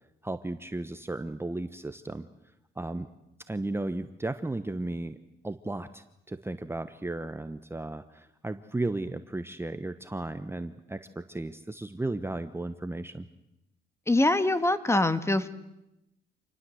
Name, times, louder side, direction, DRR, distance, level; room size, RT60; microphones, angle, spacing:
voice 1, 0.2-2.3 2.8-3.1 3.5-5.2 5.4-13.3, right 2 dB, 10° right, 10 dB, 1.1 m, -35 dB
voice 2, 14.1-15.5, left 2 dB, 15° left, 11 dB, 1.6 m, -24 dB
27.5 x 19.5 x 7.9 m, 0.88 s
cardioid pair, 90°, 20 cm